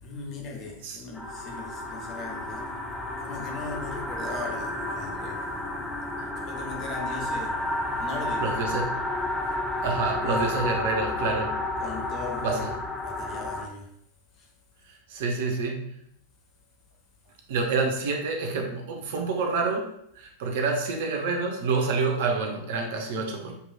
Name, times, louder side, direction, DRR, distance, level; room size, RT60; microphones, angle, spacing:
voice 1, 0.0-2.7 3.2-5.5 6.4-7.6 8.0-9.1 10.2-10.7 11.8-13.9 14.4-14.5, left 3 dB, 35° left, 0 dB, 1.0 m, -39 dB
sound 1, 1.1-13.7, left 1 dB, 10° left, 0.4 m, -31 dB
voice 2, 8.4-9.0 9.8-11.5 12.4-12.7 14.9-15.9 17.5-19.9 20.2-23.5, right 4 dB, 55° right, 3 dB, 0.7 m, -28 dB
6.5 x 3.0 x 2.3 m, 0.73 s
figure-of-eight pair, 90°, 0 cm